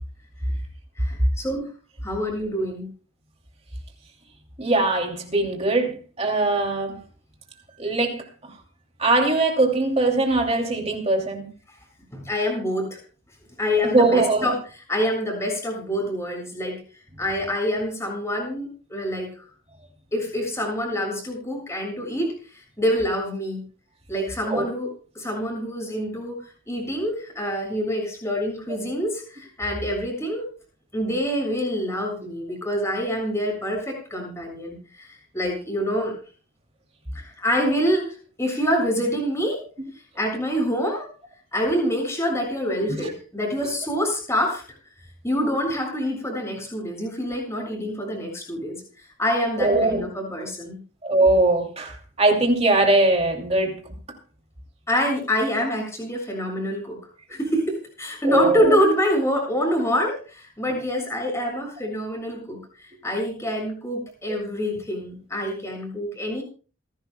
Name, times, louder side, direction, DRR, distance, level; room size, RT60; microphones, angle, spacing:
voice 1, 1.0-1.7 2.0-2.9 12.1-13.0 13.6-14.6 14.9-16.8 17.2-19.3 20.1-23.6 24.1-24.9 25.2-26.4 26.7-30.5 30.9-35.1 35.3-36.1 37.1-39.6 40.2-41.1 41.5-44.6 45.2-48.8 49.2-50.8 54.9-57.0 57.3-66.4, equal, 15° left, 0 dB, 6.9 m, -26 dB
voice 2, 4.6-7.0 7.8-8.5 9.0-11.4 13.8-14.5 24.5-24.6 43.0-43.1 43.6-43.7 49.6-50.1 51.0-53.7 58.2-58.8 64.3-64.4, right 2 dB, 30° right, 1 dB, 2.7 m, -21 dB
28.0 x 11.5 x 2.3 m, 0.39 s
head